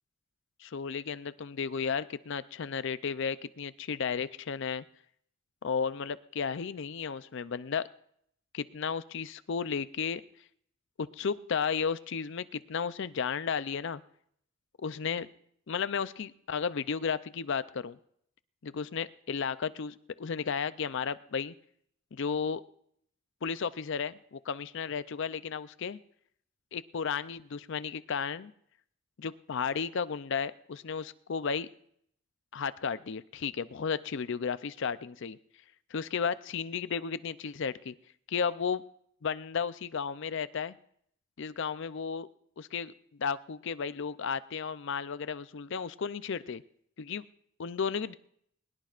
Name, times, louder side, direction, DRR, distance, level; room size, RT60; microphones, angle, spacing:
voice 1, 0.6-4.8 5.6-7.9 8.5-10.2 11.0-14.0 14.8-15.3 15.7-18.0 18.6-21.5 22.1-22.6 23.4-26.0 26.7-28.5 29.2-31.7 32.5-35.4 35.9-37.9 38.3-38.8 39.2-40.8 41.4-42.3 42.6-42.9 43.2-46.6 47.0-47.2 47.6-48.1, left 6 dB, 60° left, 15 dB, 0.5 m, -33 dB
22.0 x 20.0 x 2.5 m, 0.68 s
head